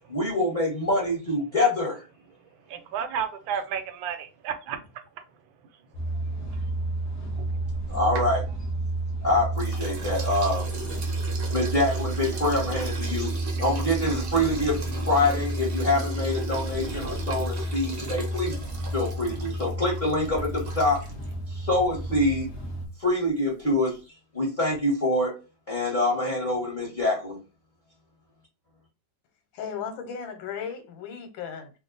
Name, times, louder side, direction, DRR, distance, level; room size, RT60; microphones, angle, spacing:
voice 1, 0.1-2.0 7.9-8.4 9.2-10.7 11.2-13.3 13.6-14.8 15.0-18.5 18.9-21.0 21.5-22.5 23.0-24.0 24.3-25.4 25.7-27.4, left 1 dB, 30° left, 1.2 m, -25 dB
voice 2, 2.7-4.8 7.4-7.7, right 7 dB, 85° right, 1.4 m, -32 dB
sound 1, 5.9-22.9, right 2 dB, 45° left, 0.7 m, -31 dB
sound 2, 7.6-9.2 9.6-21.3, right 2 dB, 45° right, 0.7 m, -39 dB
voice 3, 29.5-31.7, left 7 dB, 85° left, 1.5 m, -35 dB
3.1 x 2.4 x 3.8 m
omnidirectional pair, 2.1 m